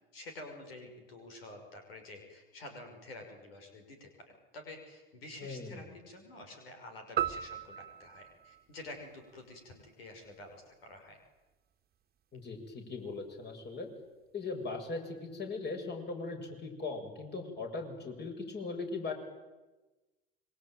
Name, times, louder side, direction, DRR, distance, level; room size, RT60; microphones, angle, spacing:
voice 1, 0.1-11.2, left 2 dB, 85° left, 5 dB, 6.0 m, -49 dB
voice 2, 5.4-5.8 12.3-13.9 14.3-19.1, left 3 dB, 35° left, 4 dB, 7.6 m, -39 dB
sound 1, 7.2-9.6, right 11 dB, 35° right, 1.6 m, -37 dB
26.5 x 24.0 x 9.3 m, 1.1 s
hypercardioid pair, 75°, 29 cm